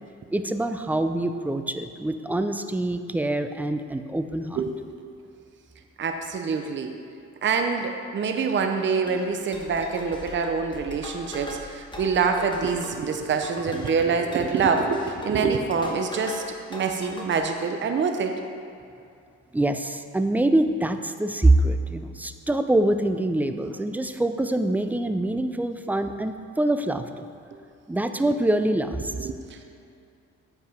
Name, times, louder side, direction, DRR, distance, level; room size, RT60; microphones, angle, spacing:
voice 1, 0.3-4.6 19.5-27.3 27.9-29.3, right 1 dB, 5° right, 8 dB, 0.3 m, -25 dB
voice 2, 6.0-6.9 7.4-16.4 16.7-18.3 28.2-28.3 29.2-29.6, right 5 dB, 40° right, 5 dB, 0.6 m, -25 dB
sound 1, 9.1-16.5 16.7-17.4, left 1 dB, 15° left, 1.2 m, -40 dB
8.1 x 4.9 x 5.0 m, 2.5 s
cardioid pair, 90°, 30 cm